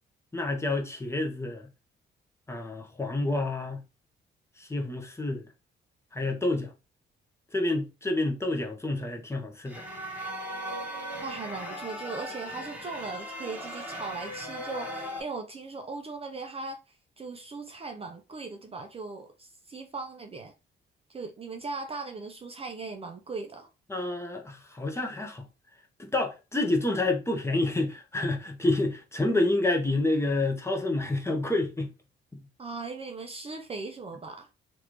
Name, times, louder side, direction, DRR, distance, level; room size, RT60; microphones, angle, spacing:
voice 1, 0.3-1.7 2.5-3.8 4.6-5.5 6.1-6.7 7.5-9.8 23.9-25.5 26.0-31.9, left 2 dB, 15° left, 0.9 m, -28 dB
sound 1, 9.6-15.2, equal, 5° right, 1.3 m, -38 dB
voice 2, 11.2-20.5 21.1-23.7 32.6-34.5, right 3 dB, 30° right, 0.5 m, -39 dB
3.2 x 2.5 x 2.9 m
cardioid pair, 90°, 20 cm